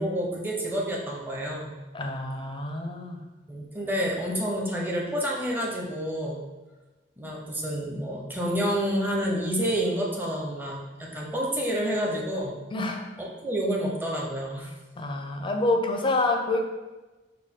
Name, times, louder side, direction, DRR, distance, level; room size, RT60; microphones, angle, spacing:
voice 1, 0.0-1.8 3.5-6.5 7.2-12.6 13.2-14.7, equal, 10° right, -2 dB, 0.7 m, -29 dB
voice 2, 1.9-3.3 12.7-13.1 15.0-16.7, left 2 dB, 30° left, 4 dB, 0.5 m, -27 dB
6.4 x 2.2 x 3.6 m, 1.2 s
head